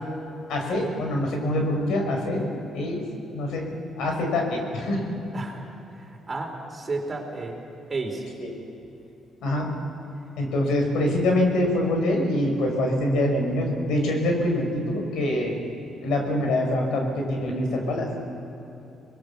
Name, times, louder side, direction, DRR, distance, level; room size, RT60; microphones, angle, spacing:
voice 1, 0.5-2.5 2.7-3.0 3.3-3.7 4.0-5.0 8.4-8.5 9.4-9.7 10.4-15.6 16.0-18.1, left 1 dB, 85° left, 2 dB, 5.5 m, -24 dB
voice 2, 5.3-5.6 5.9-7.6 7.9-8.2, right 3 dB, 30° right, 1 dB, 4.5 m, -32 dB
26.5 x 20.5 x 6.9 m, 3.0 s
cardioid pair, 105°, 0 cm